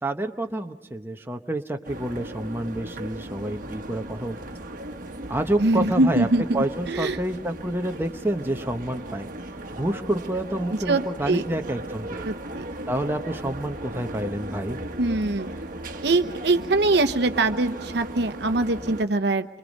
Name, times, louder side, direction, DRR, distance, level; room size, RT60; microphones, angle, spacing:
voice 1, 0.0-4.4 5.3-6.3 6.5-9.3 9.7-12.3 12.9-14.8, right 1 dB, 15° right, 4 dB, 1.0 m, -28 dB
sound 1, 1.8-19.0, right 1 dB, 50° right, 1.4 m, -37 dB
voice 2, 5.6-7.2 10.9-11.4 12.2-12.6 15.0-15.5 16.0-19.5, right 2 dB, 70° right, 8 dB, 1.0 m, -23 dB
28.5 x 24.5 x 5.3 m, 1.1 s
head